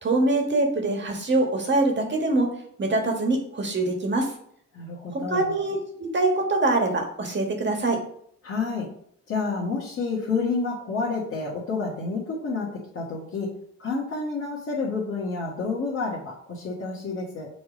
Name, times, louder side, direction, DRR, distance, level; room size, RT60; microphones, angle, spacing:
voice 1, 0.0-4.3 5.1-8.0, right 2 dB, 35° right, 2 dB, 1.6 m, -24 dB
voice 2, 4.7-5.5 8.4-8.9 9.3-17.5, left 4 dB, 45° left, -6 dB, 1.7 m, -29 dB
5.9 x 3.3 x 5.1 m, 0.66 s
cardioid pair, 90°, 30 cm